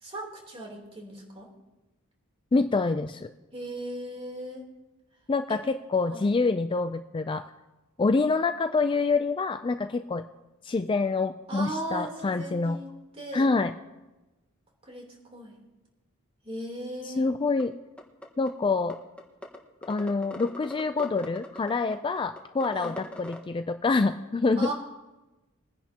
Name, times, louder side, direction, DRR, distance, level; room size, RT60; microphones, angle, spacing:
voice 1, 0.0-1.5 3.5-4.6 5.5-5.6 6.1-6.2 11.5-12.9 13.1-13.5 14.8-15.6 16.4-17.3 22.7-23.0 24.6-24.7, right 1 dB, 30° right, -1 dB, 3.3 m, -37 dB
voice 2, 2.5-3.3 5.3-7.5 8.0-10.2 10.6-12.8 13.3-13.7 17.2-17.7 18.4-19.0 19.9-24.7, left 3 dB, 25° left, 9 dB, 0.4 m, -26 dB
sound 1, 17.6-17.7 18.0-18.5 18.9-19.0 19.2-19.6 19.8-23.4, left 1 dB, 5° left, 1.4 m, -40 dB
22.0 x 10.5 x 2.9 m, 1.1 s
head